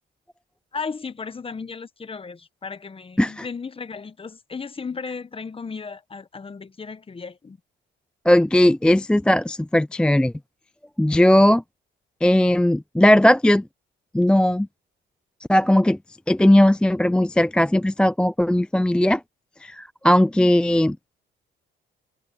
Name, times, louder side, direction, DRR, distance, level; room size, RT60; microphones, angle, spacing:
voice 1, 0.7-7.6, left 5 dB, 25° left, 1.2 m, -35 dB
voice 2, 8.3-10.3 11.0-11.6 12.2-13.6 14.1-14.7 15.5-16.0 16.3-19.2 19.6-21.0, left 1 dB, 5° left, 0.4 m, -18 dB
cardioid pair, 90°, 20 cm